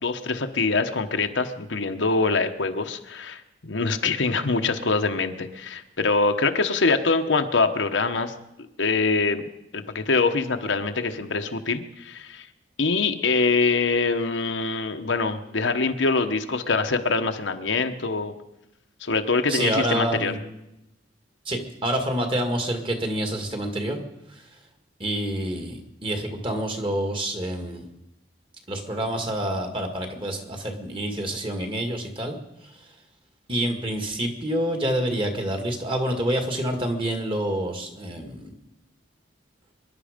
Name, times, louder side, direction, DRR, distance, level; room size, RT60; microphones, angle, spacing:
voice 1, 0.0-8.3 8.8-9.5 9.7-12.5 12.8-18.3 19.0-20.3, left 4 dB, 75° left, 6 dB, 1.1 m, -24 dB
voice 2, 19.5-20.4 21.5-24.0 24.3-24.5 25.0-27.8 28.7-32.4 32.6-32.9 33.5-38.5, right 1 dB, 30° right, 4 dB, 2.0 m, -27 dB
25.0 x 11.0 x 5.2 m, 0.89 s
head